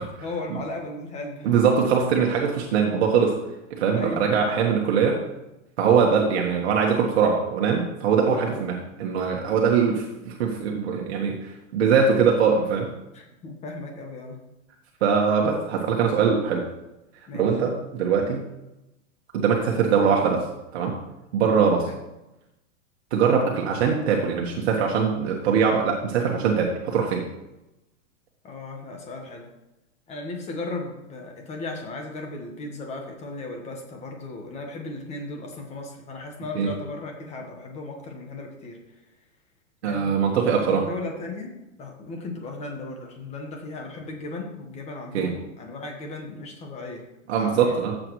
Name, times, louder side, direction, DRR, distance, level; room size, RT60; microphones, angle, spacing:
voice 1, 0.0-1.6 3.9-4.3 8.3-8.6 9.8-9.9 13.1-14.4 17.3-17.6 21.9-22.0 28.4-29.5 30.1-38.8 39.8-47.0 47.4-47.9, left 2 dB, 15° left, 2 dB, 1.5 m, -36 dB
voice 2, 1.4-3.3 3.7-5.2 5.8-12.9 15.0-16.7 17.3-18.5 19.3-20.5 20.7-21.0 21.3-21.9 23.1-27.2 36.5-36.7 39.8-40.8 45.1-45.3 47.3-47.9, right 6 dB, 55° right, 0 dB, 1.6 m, -22 dB
13.5 x 7.8 x 3.2 m, 0.94 s
hypercardioid pair, 155°, 38 cm